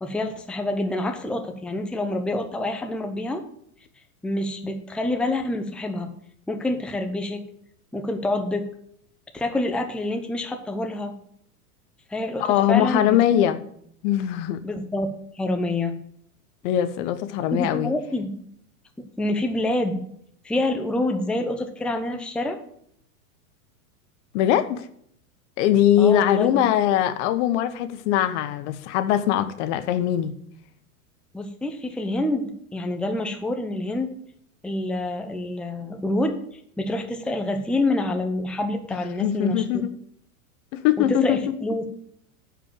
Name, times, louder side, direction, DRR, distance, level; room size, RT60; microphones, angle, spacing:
voice 1, 0.0-3.4 4.2-6.1 6.5-7.4 7.9-8.7 9.3-11.1 12.1-13.5 14.6-15.9 17.5-18.3 19.2-20.0 20.4-22.6 26.0-26.6 31.3-34.1 34.6-36.4 36.8-39.7 41.0-41.8, left 1 dB, ahead, 0.8 m, -27 dB
voice 2, 12.4-13.6 14.0-14.7 16.6-17.9 24.3-24.9 25.6-30.3 39.2-39.9 40.7-41.5, left 11 dB, 50° left, 1.0 m, -21 dB
9.7 x 5.1 x 7.5 m
hypercardioid pair, 120°, 45 cm